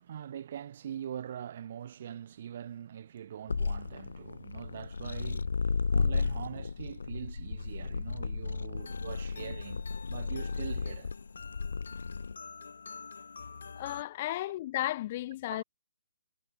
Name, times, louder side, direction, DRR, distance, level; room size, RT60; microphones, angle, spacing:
voice 1, 0.0-5.6 5.9-11.1 14.3-14.4 15.5-15.6, right 9 dB, 30° right, 1.7 m, -43 dB
sound 1, 3.5-12.3, left 4 dB, 85° left, 1.4 m, -33 dB
sound 2, 8.8-14.0, left 5 dB, 65° left, 4.1 m, -47 dB
voice 2, 13.8-15.6, left 15 dB, 20° left, 0.3 m, -34 dB
hypercardioid pair, 180°, 0 cm